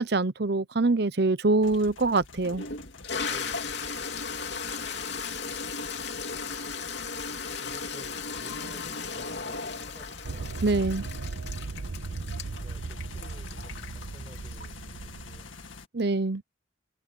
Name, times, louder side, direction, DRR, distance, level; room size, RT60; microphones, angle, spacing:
voice 1, 0.0-2.6 10.6-11.0 15.9-16.4, right 3 dB, 55° right, 0.8 m, -24 dB
sound 1, 1.6-15.9, left 3 dB, 90° left, 2.1 m, -47 dB
Toilet flush, 1.7-1.8 2.4-14.9, left 5 dB, 60° left, 3.1 m, -36 dB
voice 2, 3.2-4.0 7.0-10.6 12.5-15.6, equal, 20° right, 5.9 m, -53 dB
sound 2, 10.2-15.4, right 4 dB, 90° right, 0.6 m, -37 dB
head